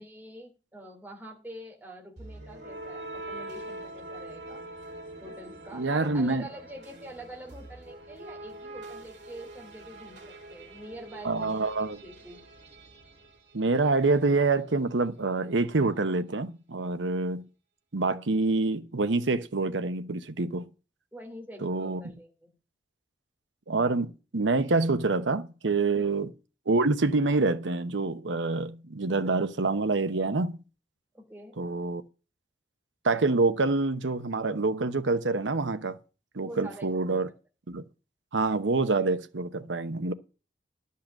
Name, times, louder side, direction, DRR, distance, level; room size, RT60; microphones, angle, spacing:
voice 1, 0.0-4.6 5.2-12.4 21.1-22.5 25.9-26.0 31.1-31.5 36.4-37.2 37.7-37.8, right 1 dB, 10° right, 2.8 m, -46 dB
sound 1, 2.2-14.1, right 2 dB, 70° right, 3.4 m, -44 dB
voice 2, 5.7-6.4 11.2-12.0 13.5-17.4 17.9-20.6 21.6-22.0 23.7-26.3 26.7-30.6 31.6-32.0 33.0-36.0 36.3-37.3 37.7-37.8 38.3-40.1, right 3 dB, 85° right, 0.9 m, -26 dB
12.0 x 5.7 x 7.4 m
head